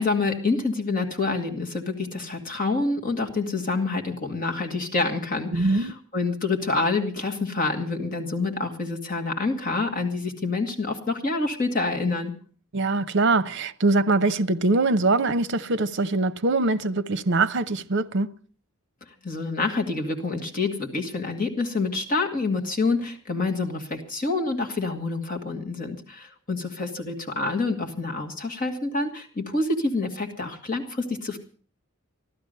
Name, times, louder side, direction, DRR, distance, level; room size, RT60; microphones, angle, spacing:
voice 1, 0.0-12.3 19.2-31.4, left 3 dB, 40° left, 2.1 m, -27 dB
voice 2, 5.5-5.9 12.7-18.3, right 2 dB, 55° right, 0.7 m, -23 dB
15.0 x 12.0 x 6.7 m
head